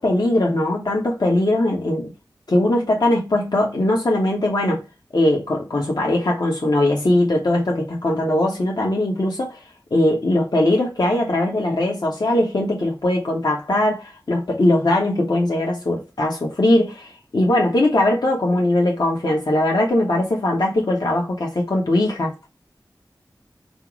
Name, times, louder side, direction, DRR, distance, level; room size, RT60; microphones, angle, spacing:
voice 1, 0.0-2.1 2.5-4.8 5.1-9.6 9.9-22.3, left 1 dB, 70° left, 1.0 m, -20 dB
5.4 x 2.0 x 4.6 m
wide cardioid pair, 50°, 7 cm